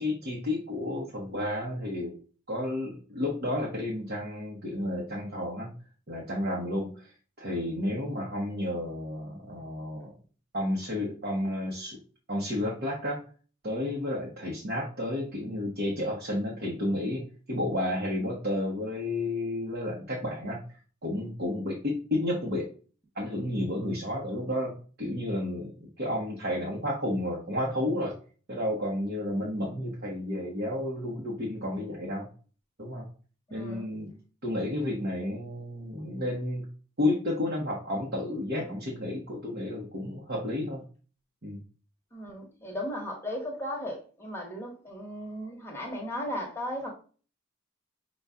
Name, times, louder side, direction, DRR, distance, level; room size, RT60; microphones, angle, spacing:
voice 1, 0.0-2.1 2.5-5.7 6.1-7.1 7.4-10.2 10.5-12.0 12.3-13.2 13.6-17.2 17.5-20.6 21.0-22.7 23.1-24.7 25.0-28.1 28.5-32.3 32.8-33.0 33.5-34.1 34.4-36.7 37.0-40.8 41.4-41.6, left 1 dB, 50° right, 1.0 m, -31 dB
voice 2, 33.5-33.9 42.1-46.9, left 1 dB, 10° left, 1.1 m, -36 dB
5.5 x 2.4 x 3.5 m
head